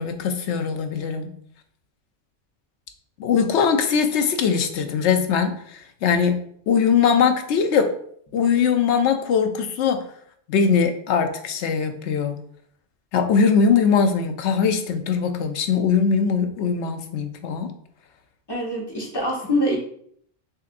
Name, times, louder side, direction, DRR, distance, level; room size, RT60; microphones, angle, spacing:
voice 1, 0.0-1.3 3.2-7.9 8.3-10.1 10.5-12.4 13.1-17.7, left 6 dB, 70° left, 7 dB, 0.9 m, -21 dB
voice 2, 18.5-19.8, equal, 20° left, -3 dB, 1.1 m, -24 dB
6.5 x 2.6 x 2.5 m, 0.63 s
omnidirectional pair, 1.2 m